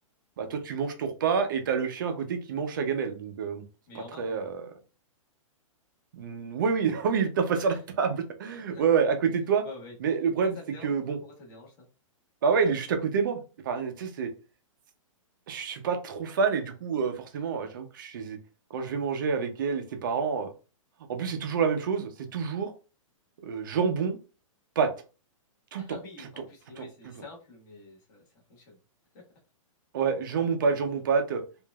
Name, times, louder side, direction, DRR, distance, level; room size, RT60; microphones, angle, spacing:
voice 1, 0.4-3.6 3.9-4.6 6.1-9.6 10.0-10.6 10.8-11.2 12.4-13.4 13.6-14.3 15.5-18.4 18.7-20.5 21.1-22.7 23.4-24.2 24.8-24.9 25.7-25.8 26.8-26.9 29.9-31.4, right 6 dB, 35° right, 6 dB, 0.6 m, -27 dB
voice 2, 3.9-4.5 7.7-7.8 8.5-8.8 9.6-9.9 10.5-11.9 25.8-28.2 28.5-28.8 29.1-29.2, left 3 dB, 35° left, -3 dB, 1.4 m, -47 dB
4.7 x 2.5 x 2.3 m, 0.34 s
hypercardioid pair, 175°, 17 cm